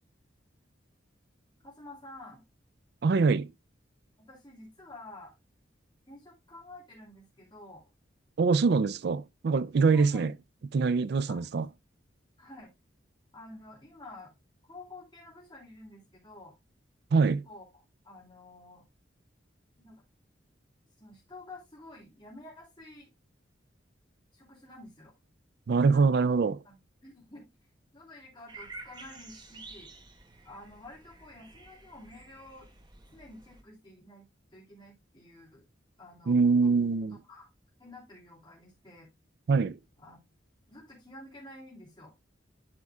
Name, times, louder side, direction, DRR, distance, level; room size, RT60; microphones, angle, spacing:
voice 1, 1.6-2.4 4.2-5.3 6.1-7.8 9.9-10.3 11.3-11.4 12.4-12.7 13.3-14.3 14.7-16.5 17.4-17.6 18.0-18.8 19.8-20.0 21.0-23.1 24.3-25.1 25.9-27.4 27.9-29.9 30.4-32.7 33.1-34.3 34.5-35.6 36.0-36.4 36.6-36.7 37.3-37.5 37.8-39.1 40.0-40.2 40.7-42.1, left 2 dB, 25° left, 2.7 m, -50 dB
voice 2, 3.0-3.5 8.4-10.3 10.7-11.7 17.1-17.5 25.7-26.6 36.3-37.2 39.5-39.8, right 4 dB, 55° right, 0.4 m, -24 dB
sound 1, 28.5-33.6, right 3 dB, 20° right, 0.9 m, -50 dB
12.0 x 4.8 x 2.3 m
head